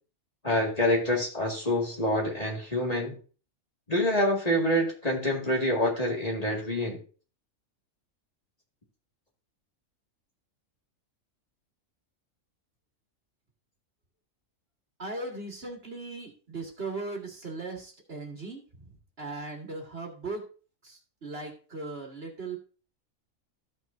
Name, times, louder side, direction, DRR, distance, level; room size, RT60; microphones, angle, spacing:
voice 1, 0.4-3.2 3.9-7.0, left 1 dB, 30° left, -1 dB, 2.2 m, -26 dB
voice 2, 15.0-18.9 19.2-20.4 20.8-22.6, right 3 dB, 50° right, 1 dB, 2.0 m, -38 dB
14.0 x 6.2 x 2.6 m, 0.37 s
omnidirectional pair, 1.4 m